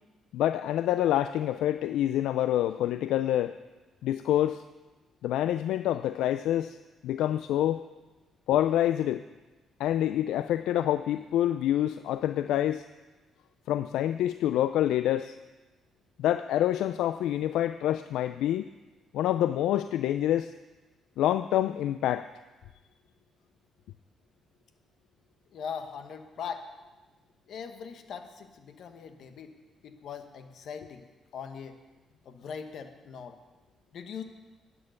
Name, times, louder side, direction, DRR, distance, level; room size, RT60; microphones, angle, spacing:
voice 1, 0.3-3.5 4.0-4.6 5.2-6.8 7.0-7.8 8.5-9.2 9.8-12.8 13.7-15.4 16.2-18.7 19.1-20.5 21.2-22.3, left 12 dB, 85° left, 12 dB, 0.3 m, -27 dB
voice 2, 25.5-26.7 27.5-29.6 29.8-31.8 32.2-33.4 33.9-34.2, left 7 dB, 65° left, 7 dB, 1.2 m, -40 dB
10.5 x 9.0 x 6.5 m, 1.2 s
cardioid pair, 90°, 0 cm